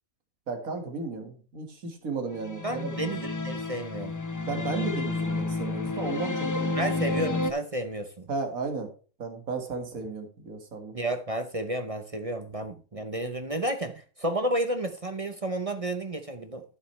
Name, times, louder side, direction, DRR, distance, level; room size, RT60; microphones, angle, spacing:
voice 1, 0.5-2.9 4.4-6.8 7.1-7.2 8.3-8.9 9.2-10.9, right 4 dB, 75° right, 2.3 m, -34 dB
sound 1, 2.4-7.5, left 3 dB, 20° left, 0.5 m, -30 dB
voice 2, 2.6-4.1 6.7-8.3 10.9-16.6, right 1 dB, 30° right, 0.7 m, -31 dB
11.0 x 9.0 x 3.2 m
omnidirectional pair, 1.5 m